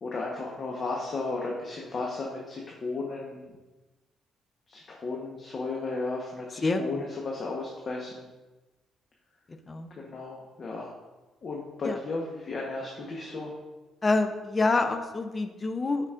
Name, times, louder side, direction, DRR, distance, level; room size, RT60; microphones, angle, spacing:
voice 1, 0.0-3.5 4.7-8.3 10.0-10.9 11.4-13.5, left 3 dB, 45° left, -2 dB, 1.1 m, -34 dB
voice 2, 6.6-7.0 9.5-9.9 11.8-12.0 14.0-16.1, left 3 dB, 30° left, 8 dB, 0.6 m, -27 dB
9.9 x 5.0 x 2.5 m, 1.1 s
cardioid pair, 90°, 0 cm